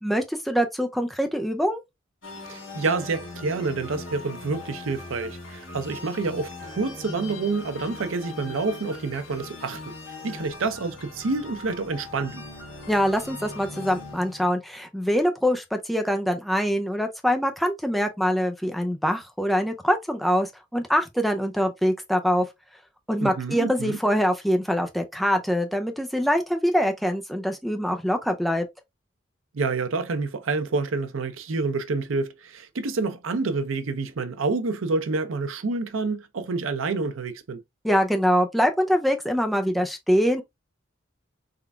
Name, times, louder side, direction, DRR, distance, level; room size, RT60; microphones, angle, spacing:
voice 1, 0.0-1.8 12.9-22.5 23.1-28.7 37.8-40.4, equal, ahead, 0.4 m, -24 dB
sound 1, 2.2-14.5, left 3 dB, 75° left, 1.3 m, -40 dB
voice 2, 2.5-9.9 10.2-12.4 23.2-24.0 29.5-37.6, right 3 dB, 90° right, 0.6 m, -28 dB
3.7 x 3.3 x 2.2 m
head